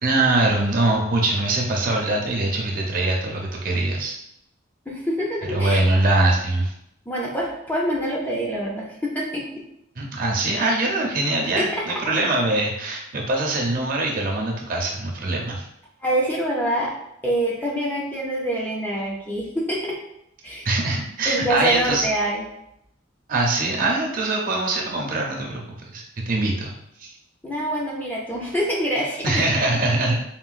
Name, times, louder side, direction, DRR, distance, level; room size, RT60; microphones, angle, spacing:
voice 1, 0.0-4.1 5.5-6.7 10.0-15.6 20.6-22.1 23.3-26.7 27.0-27.1 29.2-30.1, right 2 dB, 45° right, -1 dB, 0.5 m, -23 dB
voice 2, 4.9-5.8 7.1-9.5 11.6-11.8 16.0-16.9 17.2-20.0 20.4-20.7 21.3-22.5 27.4-29.3, right 1 dB, 10° left, -4 dB, 0.4 m, -25 dB
3.7 x 2.2 x 2.4 m, 0.78 s
head